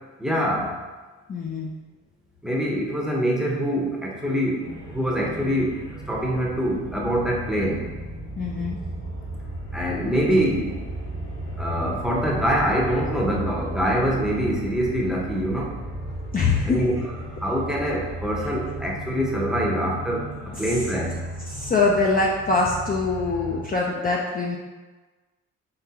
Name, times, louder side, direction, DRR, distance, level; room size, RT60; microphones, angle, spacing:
voice 1, 0.2-0.7 2.4-7.8 9.7-10.7 11.6-15.7 16.7-17.0 17.4-20.3 20.6-21.2, equal, ahead, -3 dB, 0.8 m, -24 dB
voice 2, 1.3-1.7 8.4-8.8 16.3-16.8 20.5-20.8 21.5-24.6, left 3 dB, 30° left, -3 dB, 0.5 m, -23 dB
sound 1, 4.6-23.6, right 1 dB, 90° left, 1.2 m, -35 dB
3.8 x 3.7 x 2.8 m, 1.3 s
cardioid pair, 90°, 30 cm